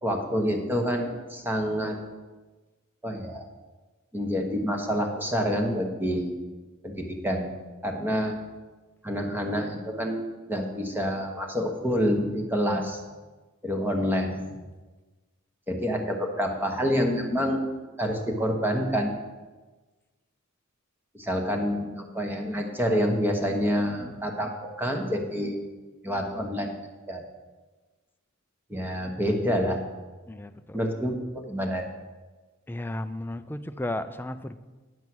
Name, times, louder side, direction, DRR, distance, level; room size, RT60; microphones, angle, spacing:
voice 1, 0.0-2.0 3.0-3.4 4.1-6.3 6.8-7.5 7.8-8.4 9.0-10.2 10.5-13.0 13.6-14.5 15.7-17.6 18.0-19.1 21.1-24.5 24.8-25.6 26.0-26.7 27.1-27.2 28.7-29.8 30.7-31.8, equal, 10° right, 2 dB, 1.1 m, -27 dB
voice 2, 30.3-30.9 32.7-34.6, left 1 dB, 10° left, 9 dB, 0.3 m, -34 dB
9.5 x 7.2 x 6.1 m, 1.3 s
head